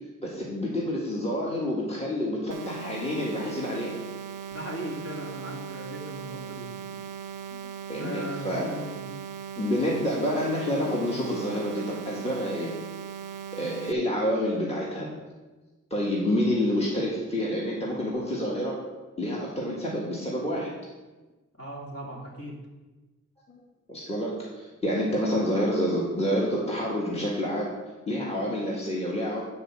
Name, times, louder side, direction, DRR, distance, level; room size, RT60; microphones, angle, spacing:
voice 1, 0.2-4.0 6.9-7.0 7.5-8.8 9.6-12.7 13.6-15.1 15.9-18.8 19.2-20.7 23.5-27.7 28.1-29.4, left 1 dB, 20° left, -5 dB, 1.7 m, -28 dB
sound 1, 2.5-13.9, right 8 dB, 80° right, 0.5 m, -39 dB
voice 2, 4.5-6.7 8.0-9.0 21.6-22.5, right 1 dB, 50° left, -4 dB, 2.7 m, -38 dB
9.5 x 4.3 x 6.2 m, 1.2 s
wide cardioid pair, 55°, 31 cm